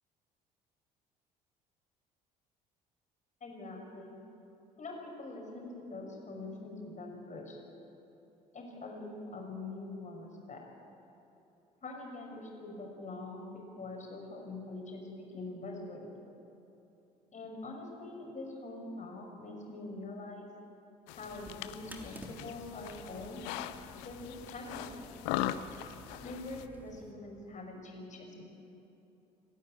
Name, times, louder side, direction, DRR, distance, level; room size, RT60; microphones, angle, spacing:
voice 1, 3.4-4.1 4.8-7.6 8.5-10.6 11.8-16.1 17.3-20.5 21.2-23.5 24.0-24.9 26.2-28.4, left 2 dB, 35° left, 0 dB, 6.1 m, -44 dB
sound 1, 21.1-26.7, left 13 dB, 65° left, 0.8 m, -40 dB
sound 2, 21.2-27.1, right 1 dB, 10° right, 3.2 m, -53 dB
28.0 x 12.0 x 8.8 m, 3.0 s
figure-of-eight pair, 55°, 20 cm